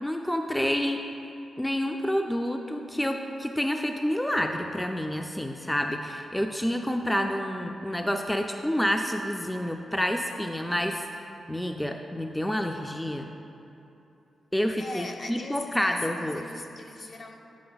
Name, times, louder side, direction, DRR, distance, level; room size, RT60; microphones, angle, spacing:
voice 1, 0.0-1.0 1.6-11.2 11.5-13.3 14.5-16.4, equal, 10° left, 4 dB, 0.3 m, -28 dB
voice 2, 14.8-17.4, left 2 dB, 50° left, 3 dB, 0.6 m, -39 dB
8.5 x 5.3 x 3.9 m, 2.9 s
cardioid pair, 95°, 0 cm